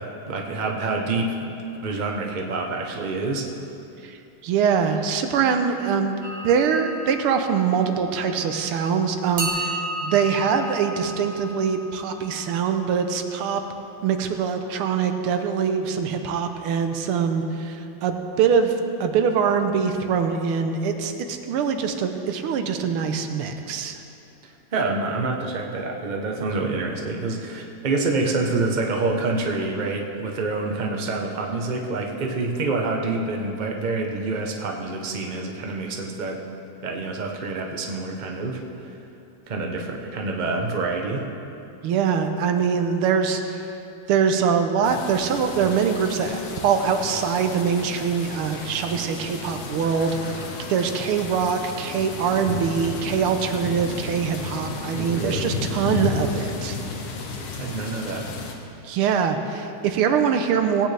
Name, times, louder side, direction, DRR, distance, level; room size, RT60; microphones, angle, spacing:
voice 1, 0.0-1.5 1.8-3.5 24.4-36.4 36.8-38.6 39.5-41.2 54.9-55.6 57.6-58.3, right 3 dB, 50° right, 1 dB, 0.5 m, -27 dB
voice 2, 4.4-6.2 6.4-13.6 14.0-18.8 19.0-24.0 41.8-43.7 44.1-50.4 50.7-56.8 58.8-60.9, right 6 dB, 90° right, 6 dB, 1.7 m, -23 dB
sound 1, 6.2-8.7 9.4-13.3, right 1 dB, 65° right, 2.0 m, -34 dB
sound 2, 44.8-58.5, left 4 dB, 75° left, 1.9 m, -33 dB
18.0 x 8.9 x 3.4 m, 2.9 s
omnidirectional pair, 2.4 m